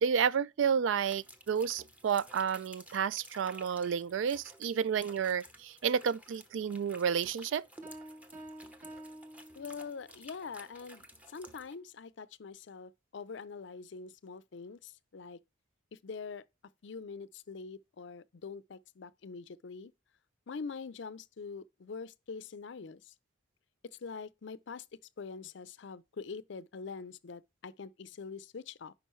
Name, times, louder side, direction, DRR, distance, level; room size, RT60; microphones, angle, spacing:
voice 1, 0.0-7.7, right 7 dB, 65° right, 0.3 m, -31 dB
sound 1, 1.0-11.7, equal, 10° right, 0.8 m, -54 dB
sound 2, 7.8-10.2, right 1 dB, 40° right, 1.5 m, -49 dB
voice 2, 9.6-15.4 16.0-16.4 16.8-19.9 20.5-23.1 23.8-24.8 25.2-28.9, left 5 dB, 60° left, 0.5 m, -44 dB
10.0 x 5.1 x 3.1 m
head